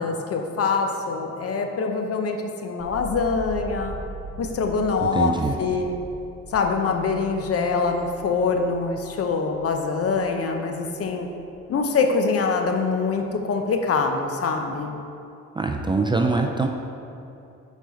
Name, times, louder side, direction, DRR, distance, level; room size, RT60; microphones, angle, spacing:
voice 1, 0.0-4.0 4.4-6.0 6.5-11.3 11.7-15.0, left 4 dB, 50° left, 4 dB, 0.7 m, -24 dB
sound 1, 2.8-12.8 13.1-13.8, right 3 dB, 65° right, 0.7 m, -41 dB
voice 2, 5.0-5.6 15.6-16.7, right 3 dB, 15° right, 3 dB, 0.4 m, -23 dB
6.9 x 4.5 x 4.0 m, 2.7 s
cardioid pair, 90°, 30 cm